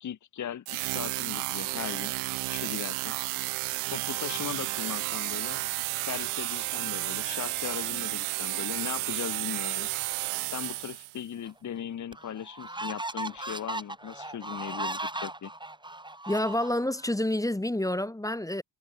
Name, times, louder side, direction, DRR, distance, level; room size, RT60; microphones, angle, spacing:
voice 1, 0.0-2.1 2.5-3.2 3.9-5.6 6.0-9.9 10.5-15.5, left 9 dB, 35° left, 1.1 m, -38 dB
sound 1, 0.7-11.2, right 23 dB, 85° right, 1.0 m, -32 dB
sound 2, 11.5-11.6 12.1-17.1, right 2 dB, 10° right, 2.2 m, -37 dB
voice 2, 16.3-18.6, left 1 dB, 5° left, 1.0 m, -28 dB
cardioid pair, 80°, 48 cm